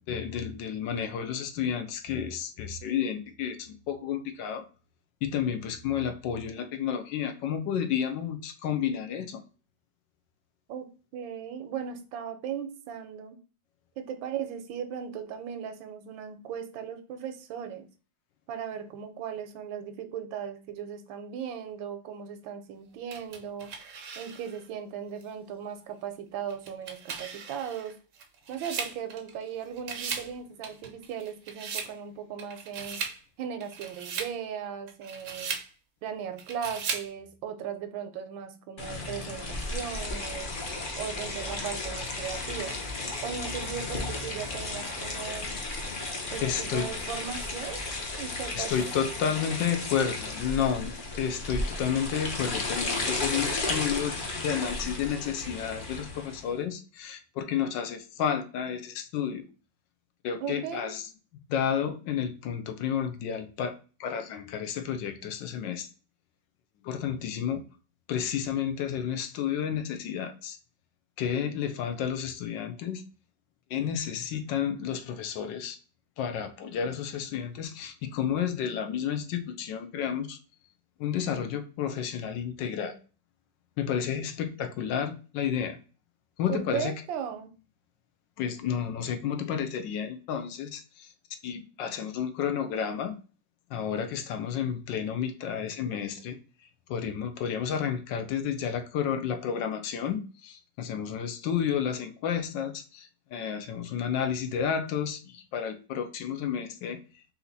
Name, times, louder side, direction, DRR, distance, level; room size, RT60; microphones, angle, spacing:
voice 1, 0.1-4.6 5.2-9.4 46.4-46.9 48.6-50.9 51.2-59.4 60.2-61.1 61.5-65.9 66.8-67.6 68.1-70.6 71.2-73.0 73.7-75.8 76.2-80.4 81.0-82.9 83.8-85.8 86.4-86.9 88.4-91.1 91.4-93.2 93.7-96.4 96.9-107.0, left 8 dB, 75° left, 9 dB, 1.3 m, -31 dB
voice 2, 11.1-13.4 14.0-17.9 18.5-23.7 24.2-27.9 28.5-33.0 33.4-35.5 36.0-40.5 41.0-42.8 43.2-45.5 46.3-47.8 48.2-48.7 60.4-60.9 71.4-71.5 86.5-87.5, right 8 dB, 85° right, 8 dB, 1.4 m, -37 dB
sound 1, 23.1-24.6 25.2-25.3 26.5-29.5 29.8-30.3 30.6-31.9 32.4-33.2 33.6-34.3 34.9-35.7 36.4-37.1, right 6 dB, 60° right, 0.8 m, -37 dB
sound 2, 38.8-56.5, left 2 dB, 50° left, 0.6 m, -34 dB
4.2 x 2.8 x 3.9 m, 0.36 s
omnidirectional pair, 2.1 m